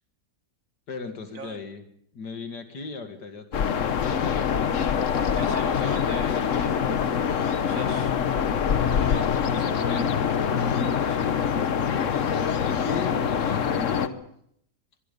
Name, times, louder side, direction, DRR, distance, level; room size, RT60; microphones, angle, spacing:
voice 1, 0.9-1.8 2.1-4.5 5.1-5.7 12.6-14.2, left 4 dB, 80° left, 7 dB, 2.6 m, -37 dB
sound 1, 3.5-14.1, left 7 dB, 55° left, 1.2 m, -24 dB
sound 2, 4.7-10.0 10.3-13.7, left 1 dB, 35° left, 6.6 m, -49 dB
voice 2, 5.2-6.8 7.6-8.1 8.9-12.2, right 4 dB, 50° right, 8 dB, 2.3 m, -43 dB
24.0 x 22.0 x 5.4 m, 0.70 s
omnidirectional pair, 1.8 m